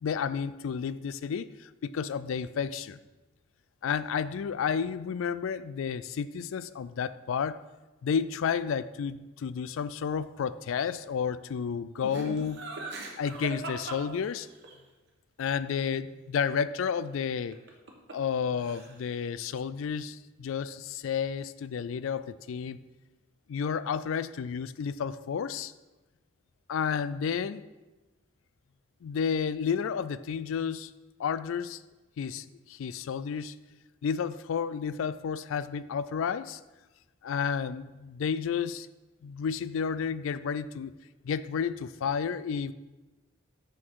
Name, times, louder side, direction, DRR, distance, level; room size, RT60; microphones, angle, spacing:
voice 1, 0.0-3.0 3.8-7.6 8.0-12.6 13.2-14.5 15.4-17.6 18.1-22.8 23.5-25.7 26.7-27.6 29.0-30.9 31.2-31.8 32.2-33.5 34.0-36.6 37.2-38.9 39.2-40.9 41.2-42.7, left 6 dB, 70° left, 15 dB, 0.3 m, -31 dB
Laughter, 12.0-14.7 17.5-18.3 18.6-19.1, right 2 dB, 55° right, 1.1 m, -40 dB
6.1 x 6.0 x 4.6 m, 1.1 s
head